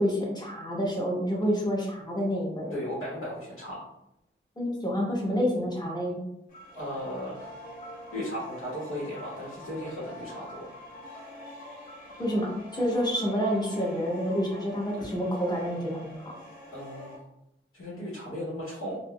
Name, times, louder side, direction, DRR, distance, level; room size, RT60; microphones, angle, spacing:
voice 1, 0.0-2.7 4.6-6.2 12.2-16.2, equal, 20° left, -3 dB, 0.9 m, -28 dB
voice 2, 2.7-3.9 6.7-7.5 8.1-10.7 15.0-15.1 16.7-17.2 17.7-19.0, equal, 85° left, -7 dB, 0.9 m, -36 dB
sound 1, 6.5-17.2, left 1 dB, 40° left, 1.0 m, -45 dB
3.6 x 2.1 x 2.2 m, 0.83 s
wide cardioid pair, 75°, 21 cm